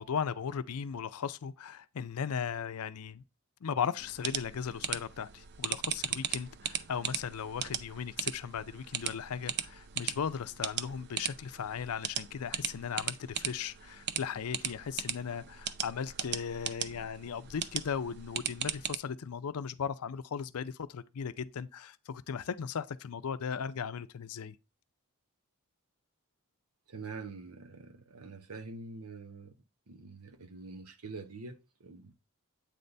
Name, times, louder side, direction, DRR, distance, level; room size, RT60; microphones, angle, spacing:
voice 1, 0.0-3.2 3.6-24.6, left 7 dB, 80° left, 0.5 m, -37 dB
sound 1, 4.0-19.0, right 9 dB, 50° right, 0.5 m, -38 dB
voice 2, 26.9-29.5 29.9-32.1, right 3 dB, 85° right, 0.9 m, -45 dB
8.4 x 4.0 x 3.3 m
head